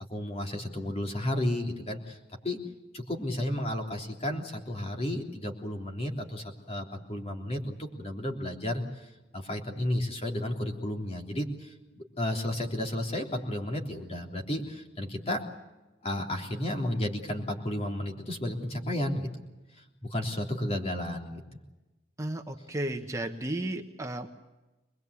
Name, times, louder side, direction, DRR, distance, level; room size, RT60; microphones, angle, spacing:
voice 1, 0.1-2.2 2.4-2.6 2.9-15.5 16.0-19.3 19.8-21.4, left 1 dB, 35° left, 2 dB, 3.4 m, -33 dB
voice 2, 22.2-24.3, right 1 dB, 15° right, 4 dB, 1.2 m, -34 dB
25.0 x 21.0 x 8.3 m, 1.1 s
head